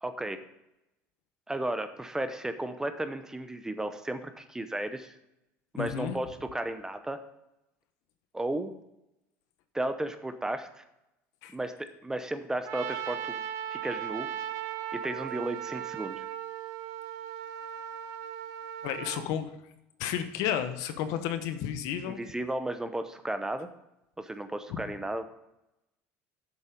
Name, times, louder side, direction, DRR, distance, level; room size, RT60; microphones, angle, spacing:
voice 1, 0.0-0.4 1.5-5.2 5.7-7.2 8.3-8.7 9.7-10.8 11.5-13.4 13.7-14.3 14.9-16.3 22.1-23.7 24.2-25.2, right 1 dB, 10° right, 10 dB, 0.8 m, -34 dB
voice 2, 5.8-6.2 11.4-11.5 18.8-19.5 20.0-22.2 24.7-24.8, left 9 dB, 70° left, 10 dB, 1.0 m, -32 dB
Trumpet, 12.6-19.2, right 10 dB, 70° right, 0.9 m, -37 dB
8.1 x 7.0 x 5.2 m, 0.91 s
supercardioid pair, 105°, 6 cm